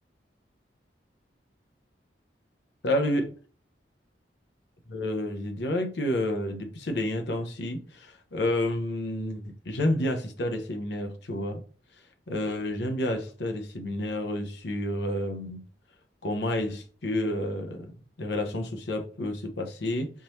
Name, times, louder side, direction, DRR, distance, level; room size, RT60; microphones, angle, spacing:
voice 1, 2.8-3.3 4.9-11.6 12.3-15.6 16.2-20.1, left 1 dB, 70° left, 0.8 m, -30 dB
3.7 x 3.0 x 2.6 m
head